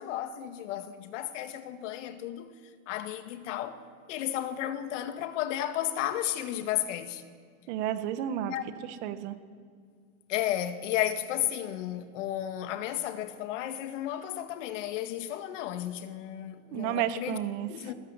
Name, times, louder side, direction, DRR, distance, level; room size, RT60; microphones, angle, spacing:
voice 1, 0.0-2.5 2.9-3.8 4.1-7.2 8.5-8.6 10.3-17.4 17.7-17.9, left 12 dB, 70° left, 2.0 m, -33 dB
voice 2, 7.7-8.5 9.0-9.4 16.7-17.7, right 11 dB, 60° right, 1.9 m, -31 dB
20.5 x 19.0 x 9.2 m
supercardioid pair, 135°, 38 cm